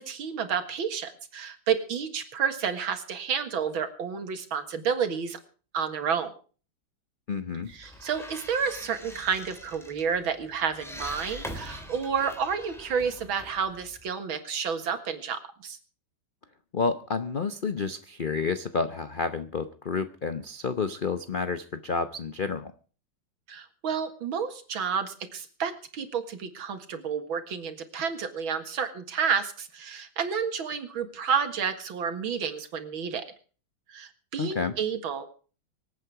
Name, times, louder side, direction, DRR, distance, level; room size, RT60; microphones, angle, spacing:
voice 1, 0.0-5.4 5.7-6.3 7.7-15.8 23.5-33.3 33.9-35.2, right 6 dB, 90° right, 9 dB, 2.5 m, -30 dB
voice 2, 7.3-7.7 16.7-22.7 34.4-34.7, left 4 dB, 60° left, 11 dB, 0.5 m, -30 dB
sound 1, 7.6-14.1, equal, ahead, 3.0 m, -43 dB
25.0 x 8.8 x 4.7 m, 0.39 s
omnidirectional pair, 2.1 m